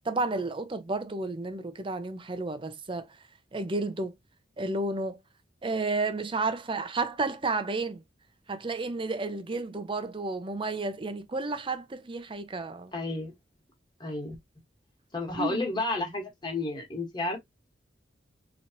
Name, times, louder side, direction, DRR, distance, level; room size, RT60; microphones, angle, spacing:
voice 1, 0.0-3.1 3.5-4.1 4.6-5.2 5.6-8.0 8.5-12.9 15.3-15.6, right 3 dB, 30° right, 0.6 m, -31 dB
voice 2, 12.9-13.3 14.0-14.3 15.1-17.4, left 2 dB, 25° left, 1.5 m, -31 dB
3.9 x 3.1 x 2.9 m
head